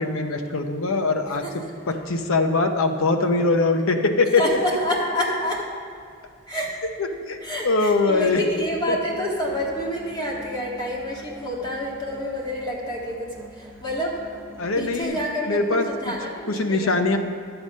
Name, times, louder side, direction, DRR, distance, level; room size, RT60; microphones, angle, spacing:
voice 1, 0.0-1.4 1.9-4.4 7.0-7.4 7.6-8.4 8.9-9.0 14.6-15.2 15.5-16.1 16.5-17.2, left 3 dB, 75° left, 6 dB, 0.8 m, -22 dB
voice 2, 4.4-5.7 6.5-6.8 7.4-17.1, equal, 20° left, -3 dB, 1.8 m, -28 dB
Musical instrument, 8.2-15.0, equal, 10° right, 0.7 m, -46 dB
11.5 x 7.9 x 5.4 m, 2.2 s
head